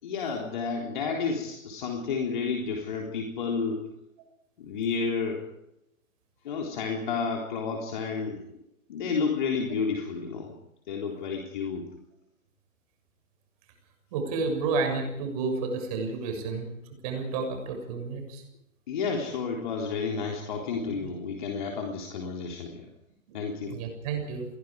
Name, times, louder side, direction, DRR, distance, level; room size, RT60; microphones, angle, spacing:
voice 1, 0.0-3.9 4.6-5.4 6.4-8.5 8.9-10.5 10.9-11.9 18.9-22.9 23.3-23.8, left 5 dB, 35° left, 1 dB, 3.7 m, -31 dB
voice 2, 14.1-16.7 17.0-18.4 20.9-21.1 23.3-23.4 23.7-24.5, right 4 dB, 25° right, 4 dB, 6.9 m, -31 dB
29.5 x 22.0 x 5.0 m, 0.84 s
figure-of-eight pair, 135°, 41 cm